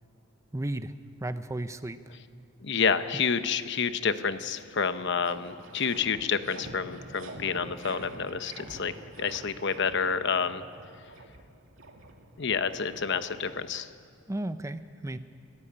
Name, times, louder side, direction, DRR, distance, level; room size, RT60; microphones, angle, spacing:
voice 1, 0.5-0.9 1.2-2.2 3.1-3.2 14.3-15.2, right 1 dB, 15° right, 11 dB, 0.6 m, -34 dB
voice 2, 2.6-8.9 9.2-10.6 12.4-13.9, left 6 dB, 60° left, 11 dB, 0.9 m, -29 dB
sound 1, 4.6-14.0, right 2 dB, 80° right, 2.2 m, -47 dB
27.0 x 15.0 x 8.8 m, 2.2 s
head